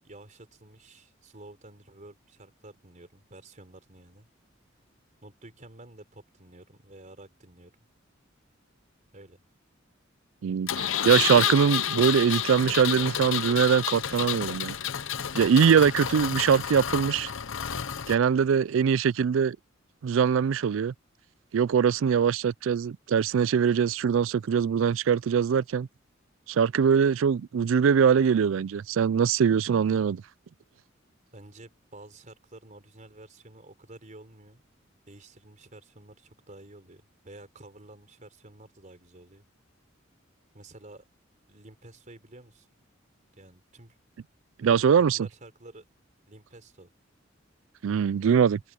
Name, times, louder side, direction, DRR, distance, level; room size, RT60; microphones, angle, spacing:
voice 1, 0.0-4.3 5.2-7.7 9.1-9.4 31.3-34.6 35.1-39.4 40.5-41.0 41.5-42.7 43.4-44.0 44.6-44.9 45.1-45.9 46.3-46.9, right 2 dB, 40° right, 4.2 m, -50 dB
voice 2, 10.4-14.8 15.3-17.3 18.1-19.6 20.0-20.9 21.5-25.9 26.5-30.2 44.6-45.2 47.8-48.6, right 7 dB, 75° right, 0.4 m, -22 dB
Engine, 10.7-18.2, left 9 dB, 75° left, 0.9 m, -30 dB
open air
head